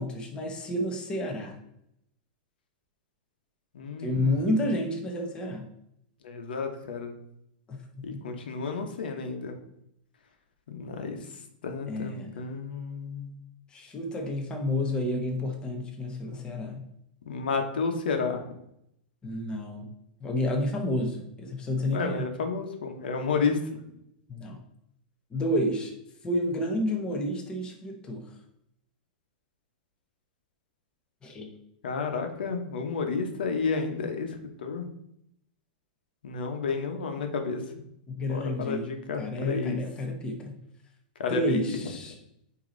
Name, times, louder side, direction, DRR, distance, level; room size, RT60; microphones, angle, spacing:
voice 1, 0.0-1.6 4.0-5.7 7.7-7.8 8.1-8.2 11.9-12.4 13.7-16.8 19.2-19.9 20.2-22.3 24.3-24.6 25.3-25.9 26.2-28.3 31.2-31.5 38.1-40.6 41.3-42.2, left 1 dB, 20° left, 2 dB, 1.0 m, -30 dB
voice 2, 3.7-4.5 6.2-7.2 8.0-9.6 10.7-11.2 11.6-13.3 17.3-18.4 21.9-23.8 31.8-34.3 34.6-34.9 36.2-37.6 38.2-39.8 41.2-41.8, left 5 dB, 90° left, 5 dB, 1.1 m, -31 dB
8.3 x 3.0 x 3.9 m, 0.77 s
supercardioid pair, 145°, 5 cm